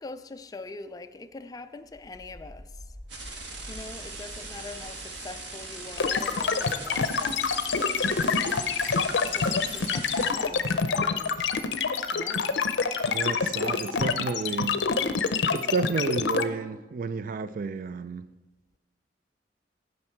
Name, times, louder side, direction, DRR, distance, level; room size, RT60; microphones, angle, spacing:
voice 1, 0.0-2.7 3.7-7.5 8.7-8.9 9.2-11.6 12.1-12.5, left 3 dB, 20° left, 0.4 m, -43 dB
sound 1, 1.8-12.6, left 1 dB, 5° right, 1.5 m, -49 dB
sound 2, 3.1-10.3, right 3 dB, 90° right, 1.5 m, -40 dB
sound 3, 6.0-16.4, left 5 dB, 80° left, 0.6 m, -26 dB
voice 2, 13.1-14.8 15.5-18.3, right 4 dB, 50° right, 0.3 m, -31 dB
15.5 x 5.3 x 4.4 m
head